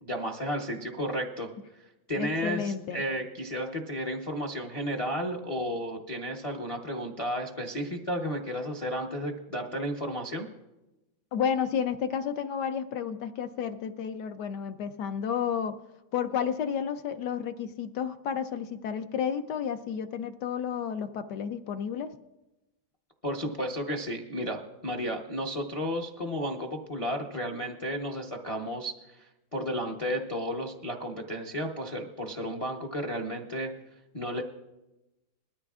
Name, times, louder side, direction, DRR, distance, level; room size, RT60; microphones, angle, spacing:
voice 1, 0.0-1.5 2.1-10.5 23.2-33.7 34.1-34.4, equal, 45° left, 2 dB, 0.4 m, -33 dB
voice 2, 2.2-3.0 11.3-15.8 16.1-22.1, left 7 dB, 70° left, 8 dB, 1.0 m, -31 dB
20.5 x 13.0 x 2.4 m, 0.99 s
omnidirectional pair, 2.2 m